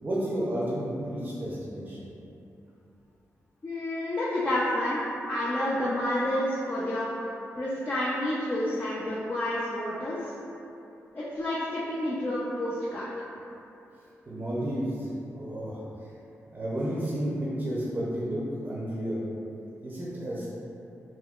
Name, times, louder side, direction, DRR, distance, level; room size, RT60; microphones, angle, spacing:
voice 1, 0.0-2.1 14.3-15.8 16.5-19.3 19.8-20.5, right 1 dB, 35° right, -7 dB, 0.6 m, -31 dB
voice 2, 3.6-5.0 5.3-7.1 7.6-10.3 11.1-13.1, left 1 dB, 35° left, -8 dB, 0.5 m, -29 dB
3.6 x 2.2 x 2.3 m, 2.8 s
cardioid pair, 70°, 6 cm